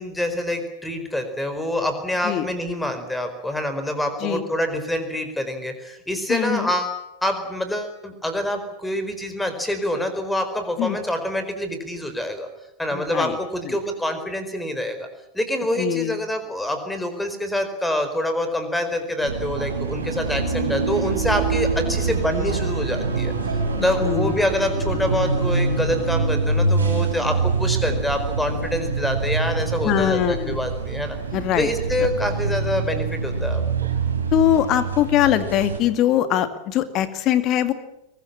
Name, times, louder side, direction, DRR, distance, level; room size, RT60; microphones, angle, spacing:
voice 1, 0.0-12.5 12.8-15.1 15.3-23.3 23.8-31.2 31.6-33.6, left 1 dB, 5° left, 8 dB, 4.6 m, -26 dB
voice 2, 6.3-6.7 10.8-11.0 12.9-13.4 13.6-13.8 15.8-16.2 23.8-24.3 25.2-25.4 29.8-30.7 31.3-31.7 32.0-32.1 34.3-37.7, left 11 dB, 35° left, 11 dB, 2.2 m, -22 dB
sound 1, 19.2-35.8, right 4 dB, 70° right, 4.4 m, -25 dB
Bowed string instrument, 21.5-26.4, left 9 dB, 70° left, 7.4 m, -41 dB
23.0 x 21.0 x 8.7 m, 0.85 s
figure-of-eight pair, 90°, 0 cm